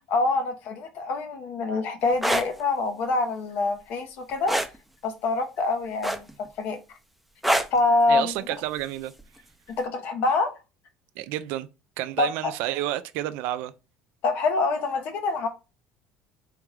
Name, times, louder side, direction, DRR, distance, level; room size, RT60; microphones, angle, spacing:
voice 1, 0.1-4.5 5.0-6.3 6.6-6.8 7.7-8.3 9.8-10.5 12.2-12.5 14.2-15.5, left 3 dB, 60° left, 1.0 m, -25 dB
sound 1, 2.1-2.5 4.5-4.8 6.0-6.5 7.4-7.8 9.2-9.4, right 1 dB, ahead, 0.6 m, -24 dB
voice 2, 8.1-9.1 11.2-11.7 12.0-13.7, right 14 dB, 70° right, 0.4 m, -30 dB
3.5 x 3.5 x 3.3 m
hypercardioid pair, 80°, 3 cm